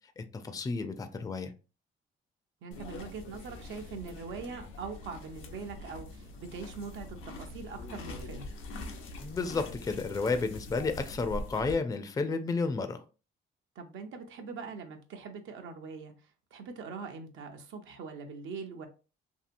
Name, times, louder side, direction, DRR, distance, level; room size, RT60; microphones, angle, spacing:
voice 1, 0.2-1.5 9.2-13.0, left 4 dB, 20° left, 8 dB, 0.4 m, -32 dB
voice 2, 2.6-8.5 13.8-16.1 16.5-18.9, right 5 dB, 80° right, 5 dB, 0.6 m, -42 dB
sound 1, 2.7-11.7, left 2 dB, 85° left, 0.6 m, -43 dB
2.7 x 2.7 x 2.5 m, 0.34 s
cardioid pair, 90°, 20 cm